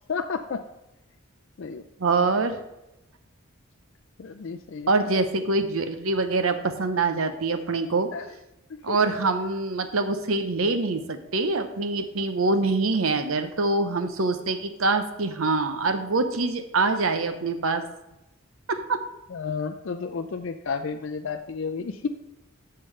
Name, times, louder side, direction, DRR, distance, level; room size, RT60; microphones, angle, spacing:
voice 1, 0.1-0.6 1.6-1.8 4.2-4.9 8.1-8.3 8.9-9.1 19.3-22.1, left 5 dB, 60° left, 6 dB, 0.4 m, -31 dB
voice 2, 2.0-2.6 4.9-8.1 8.8-17.8 18.7-19.0, right 3 dB, 75° right, 9 dB, 0.8 m, -25 dB
11.0 x 6.8 x 3.3 m, 0.95 s
head